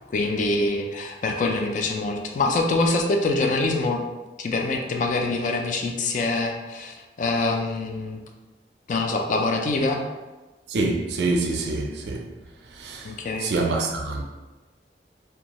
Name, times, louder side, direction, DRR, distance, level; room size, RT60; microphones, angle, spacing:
voice 1, 0.1-4.0 4.4-8.2 8.9-10.0 13.0-13.5, left 2 dB, 45° left, 0.3 m, -25 dB
voice 2, 10.7-12.3 12.7-13.1 13.4-14.2, right 3 dB, 75° right, 0.4 m, -26 dB
2.6 x 2.3 x 2.9 m
head